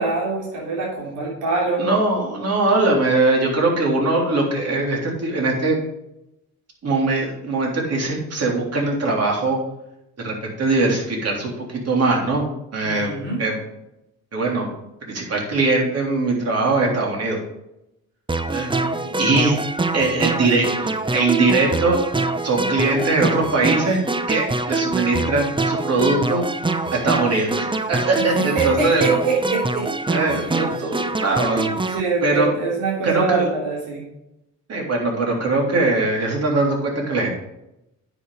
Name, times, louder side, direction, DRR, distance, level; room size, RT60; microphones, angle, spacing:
voice 1, 0.0-1.8 12.8-13.4 18.8-19.1 28.5-29.9 30.3-30.4 31.9-34.1, right 4 dB, 80° right, -4 dB, 3.2 m, -24 dB
voice 2, 1.8-5.8 6.8-9.6 10.2-13.5 14.3-17.4 18.5-18.7 19.2-19.6 19.9-22.1 22.4-26.4 26.9-29.2 30.1-31.7 32.2-32.5 33.0-33.5 34.7-37.3, right 3 dB, 55° right, -1 dB, 3.6 m, -21 dB
sound 1, 18.3-32.0, right 2 dB, 15° right, 0.7 m, -25 dB
9.6 x 6.4 x 4.9 m, 0.87 s
cardioid pair, 90°, 30 cm